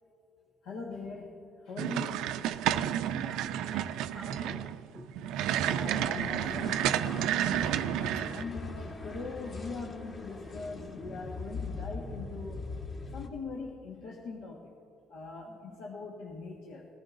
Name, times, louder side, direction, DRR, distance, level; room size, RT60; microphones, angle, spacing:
voice 1, 0.6-2.4 5.6-7.8 8.3-12.7 13.1-14.7 15.1-16.9, left 4 dB, 75° left, -2 dB, 1.6 m, -42 dB
sound 1, 1.8-8.4, right 11 dB, 80° right, 0.4 m, -31 dB
voice 2, 3.2-5.3 15.5-15.8, left 1 dB, 15° left, -4 dB, 2.6 m, -50 dB
sound 2, 5.8-13.3, left 3 dB, 35° left, 1.7 m, -41 dB
20.5 x 14.5 x 2.6 m, 2.9 s
cardioid pair, 140°, 0 cm